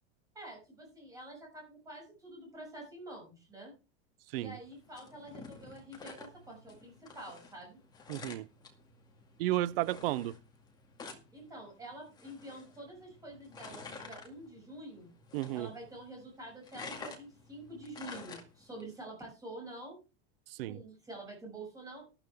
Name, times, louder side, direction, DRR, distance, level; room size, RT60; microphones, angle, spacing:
voice 1, 0.4-3.7 4.3-7.8 11.3-15.1 15.5-20.0 20.7-22.1, right 1 dB, 10° right, 6.9 m, -47 dB
sound 1, 4.5-18.9, left 4 dB, 10° left, 2.1 m, -51 dB
voice 2, 8.1-8.5 9.4-10.3 15.3-15.7 20.6-20.8, right 15 dB, 60° right, 0.7 m, -32 dB
13.0 x 12.5 x 3.5 m
supercardioid pair, 175°, 33 cm